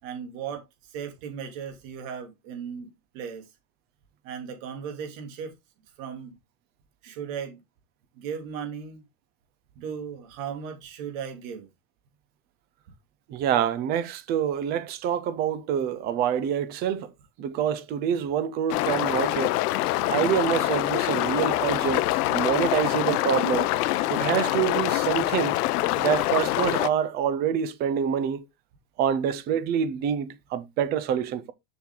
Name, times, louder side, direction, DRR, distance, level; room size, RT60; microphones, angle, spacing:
voice 1, 0.0-3.5 4.2-5.5 6.0-6.4 7.0-7.6 8.1-9.0 9.7-11.7, right 7 dB, 55° right, 3.1 m, -36 dB
voice 2, 13.3-17.1 17.4-19.6 20.0-23.7 24.1-25.6 26.0-28.4 29.0-31.5, right 9 dB, 20° right, 0.5 m, -26 dB
sound 1, 18.7-26.9, left 17 dB, 75° left, 0.8 m, -25 dB
7.3 x 6.2 x 3.8 m
supercardioid pair, 170°, 46 cm